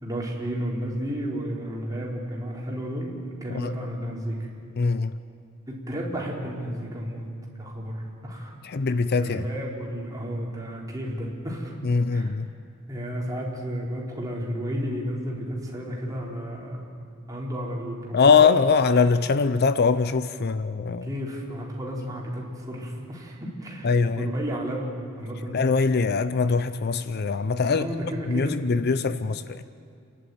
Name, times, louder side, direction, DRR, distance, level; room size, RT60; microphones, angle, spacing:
voice 1, 0.0-4.4 5.7-7.3 7.6-8.6 9.2-11.7 12.1-12.4 12.9-16.9 17.3-18.5 20.5-20.6 21.0-25.6 27.7-28.6, equal, 15° right, -3 dB, 4.0 m, -32 dB
voice 2, 4.8-5.1 8.6-9.4 11.8-12.5 18.1-21.1 23.8-24.3 25.5-27.9 28.3-29.6, left 5 dB, 50° left, 13 dB, 0.5 m, -22 dB
30.0 x 11.5 x 9.3 m, 2.3 s
head